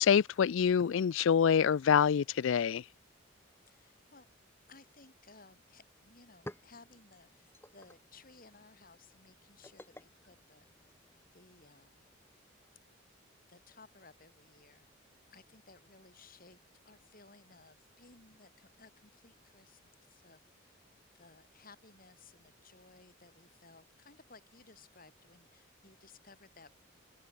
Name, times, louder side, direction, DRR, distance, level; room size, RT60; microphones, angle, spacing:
voice 1, 0.0-2.8, left 7 dB, 70° left, 0.4 m, -26 dB
voice 2, 3.7-4.3 4.7-10.7 11.3-12.1 13.5-14.9 15.3-16.6 16.8-19.8 20.1-20.8 21.1-26.8, left 3 dB, 45° left, 6.2 m, -59 dB
sound 1, 6.2-11.3, left 1 dB, 10° left, 3.9 m, -54 dB
open air
head